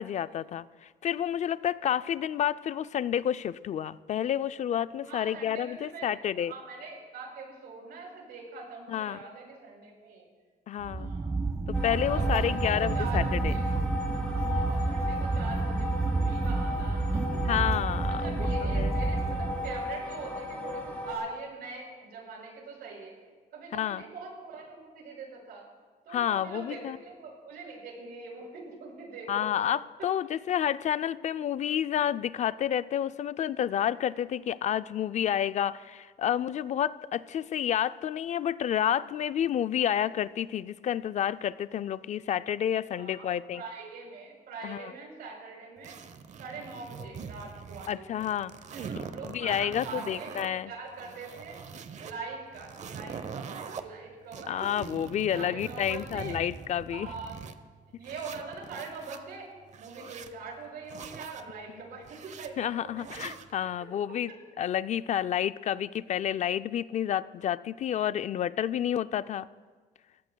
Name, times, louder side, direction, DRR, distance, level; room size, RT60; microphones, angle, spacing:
voice 1, 0.0-6.5 8.9-9.2 10.7-11.1 11.8-13.5 17.5-18.5 18.7-18.9 23.7-24.0 26.1-27.0 29.3-43.6 44.6-44.9 47.9-48.5 49.2-50.7 54.5-57.1 62.6-64.3 64.6-69.5, left 10 dB, 50° left, 14 dB, 0.4 m, -30 dB
voice 2, 5.0-10.2 10.9-11.4 12.1-13.8 14.3-17.6 18.1-23.1 23.5-25.7 26.0-29.5 30.0-30.1 42.9-46.0 46.4-48.3 48.7-51.6 52.0-54.9 55.3-56.4 56.9-57.4 58.0-59.5 59.8-63.3 63.6-63.9 64.3-64.4, right 4 dB, 75° right, -1 dB, 5.9 m, -43 dB
sound 1, 10.8-19.9, right 3 dB, 15° right, 0.8 m, -29 dB
sound 2, 11.7-21.1, left 2 dB, 10° left, 4.6 m, -36 dB
sound 3, 45.8-47.9 48.2-50.5 50.9-52.1 52.5-53.8 54.3-57.6 58.0-59.2 59.7-60.3 60.9-61.4 62.0-62.5 63.0-63.5, right 6 dB, 45° right, 0.9 m, -43 dB
29.5 x 16.0 x 2.3 m, 1.5 s
cardioid pair, 120°, 16 cm